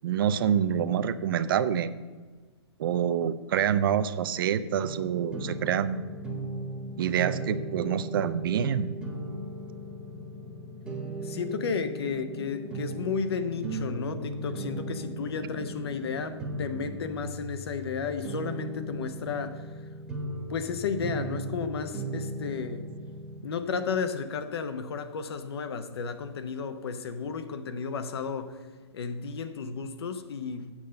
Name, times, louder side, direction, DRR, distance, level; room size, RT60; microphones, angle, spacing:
voice 1, 0.0-1.9 2.8-6.0 7.0-8.9, right 8 dB, 50° right, 12 dB, 0.6 m, -26 dB
sound 1, 4.2-17.3, left 2 dB, 10° left, 0.7 m, -49 dB
sound 2, 4.8-23.4, right 2 dB, 5° right, 1.1 m, -37 dB
voice 2, 11.2-19.8 20.5-22.9 23.4-28.7 28.9-30.7, left 5 dB, 60° left, 10 dB, 1.0 m, -33 dB
7.4 x 5.6 x 7.6 m, 1.4 s
hypercardioid pair, 140°, 15 cm